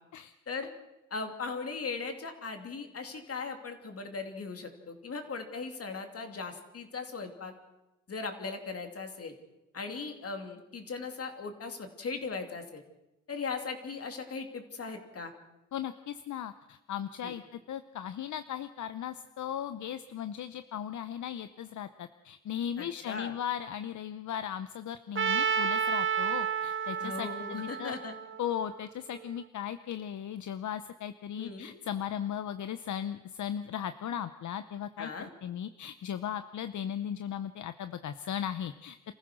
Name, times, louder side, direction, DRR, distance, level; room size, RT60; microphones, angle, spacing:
voice 1, 1.1-7.5 8.1-9.3 9.7-12.8 13.3-15.3 17.2-17.3 22.8-23.3 27.0-28.1 31.3-31.7 35.0-35.3, left 4 dB, 55° left, 5 dB, 2.9 m, -38 dB
voice 2, 15.7-28.0 28.4-35.1 35.4-39.0, left 9 dB, 75° left, 11 dB, 0.8 m, -37 dB
Trumpet, 25.2-29.2, right 7 dB, 45° right, 0.8 m, -31 dB
27.5 x 15.0 x 6.3 m, 0.96 s
cardioid pair, 105°, 29 cm